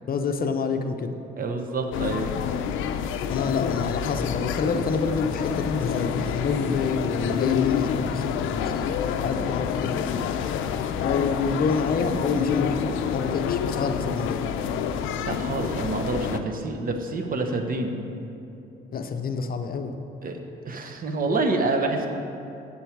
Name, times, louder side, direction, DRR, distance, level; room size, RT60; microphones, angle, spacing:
voice 1, 0.1-1.2 3.3-10.0 11.0-14.5 18.9-19.9, left 4 dB, 50° left, 6 dB, 0.6 m, -27 dB
voice 2, 1.4-2.3 10.6-10.9 13.7-13.8 15.3-18.0 20.2-20.4 20.6-22.1, right 3 dB, 45° right, 4 dB, 0.9 m, -27 dB
sound 1, 1.9-16.4, left 8 dB, 90° left, 0.4 m, -28 dB
8.4 x 7.1 x 4.6 m, 2.8 s
cardioid pair, 90°, 20 cm